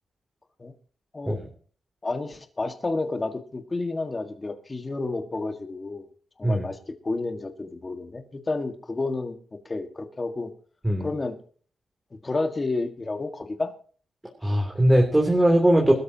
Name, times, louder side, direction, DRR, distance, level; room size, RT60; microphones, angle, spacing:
voice 1, 2.0-6.1 6.4-9.4 9.7-10.5 11.0-11.4 12.2-13.7, left 3 dB, 25° left, 6 dB, 1.7 m, -30 dB
voice 2, 14.4-15.9, right 1 dB, 10° right, 0 dB, 3.1 m, -20 dB
21.5 x 13.0 x 2.9 m, 0.43 s
cardioid pair, 105°, 0 cm